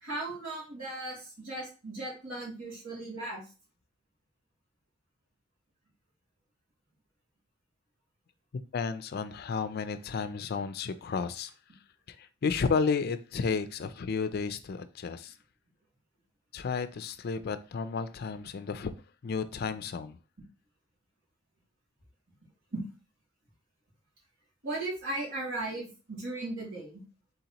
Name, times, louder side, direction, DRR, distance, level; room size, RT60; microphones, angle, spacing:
voice 1, 0.0-3.4 22.7-22.8 24.6-27.0, right 2 dB, 90° right, 2.5 m, -37 dB
voice 2, 8.7-11.5 12.1-15.3 16.5-18.9 19.2-20.2, left 5 dB, 50° left, 0.4 m, -32 dB
4.0 x 4.0 x 2.9 m
head